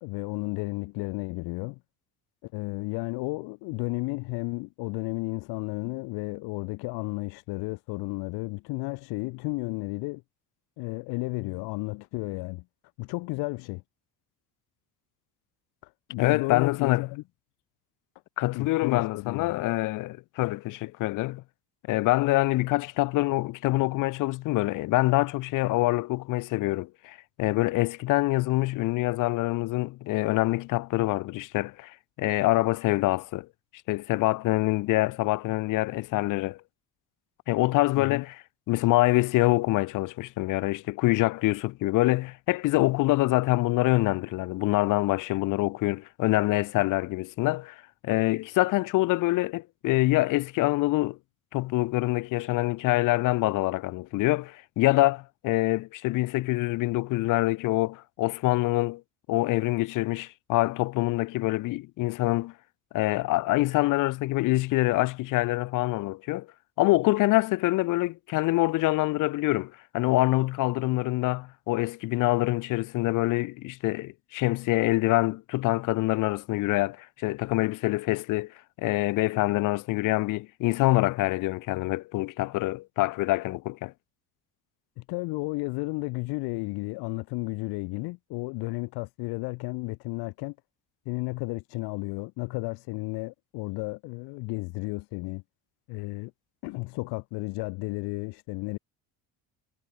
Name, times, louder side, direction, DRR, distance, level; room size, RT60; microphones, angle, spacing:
voice 1, 0.0-1.8 2.4-10.2 10.8-12.6 13.0-13.8 15.8-17.2 18.5-19.5 38.0-38.2 85.0-90.6 91.1-95.4 95.9-96.3 96.6-98.8, left 25 dB, 85° left, 2.1 m, -33 dB
voice 2, 16.2-17.1 18.4-21.4 21.9-33.5 33.9-36.6 37.5-51.2 51.5-59.0 59.3-62.5 62.9-66.5 66.8-83.9, left 19 dB, 55° left, 0.9 m, -25 dB
cardioid pair, 170°, 38 cm